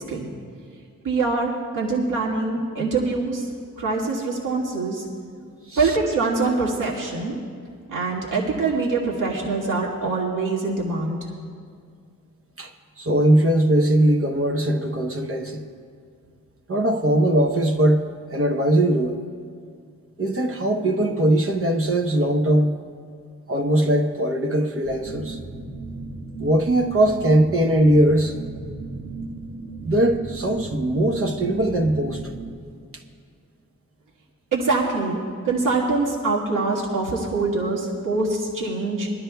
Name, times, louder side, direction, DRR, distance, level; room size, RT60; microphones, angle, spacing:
voice 1, 1.0-3.5 3.8-5.1 5.8-7.4 7.9-11.2 34.5-35.2 35.4-39.1, right 3 dB, 70° right, -4 dB, 1.9 m, -24 dB
voice 2, 12.6-15.6 16.7-19.2 20.2-22.8 23.5-25.4 26.4-28.3 29.8-32.2, right 1 dB, 40° right, 3 dB, 0.9 m, -20 dB
sound 1, 24.8-32.5, right 3 dB, 90° right, 1.5 m, -35 dB
22.5 x 12.0 x 2.3 m, 2.2 s
wide cardioid pair, 125°, 33 cm